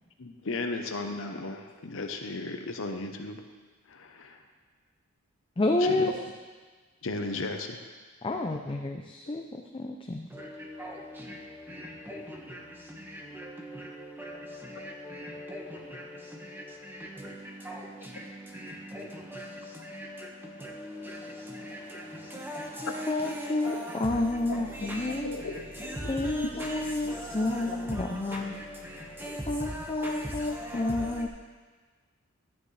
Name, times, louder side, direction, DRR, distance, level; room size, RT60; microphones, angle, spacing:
voice 1, 0.2-3.4 3.9-4.4 5.8-6.1 7.0-7.8 9.3-9.4 23.4-23.9 25.2-25.7, left 3 dB, 65° left, 5 dB, 0.9 m, -35 dB
voice 2, 5.6-6.1 8.2-10.3 23.1-25.4 26.1-28.5 29.5-31.3, left 2 dB, 25° left, 3 dB, 0.5 m, -30 dB
voice 3, 10.3-31.3, equal, 10° right, -2 dB, 1.5 m, -40 dB
13.0 x 9.6 x 3.3 m, 1.4 s
head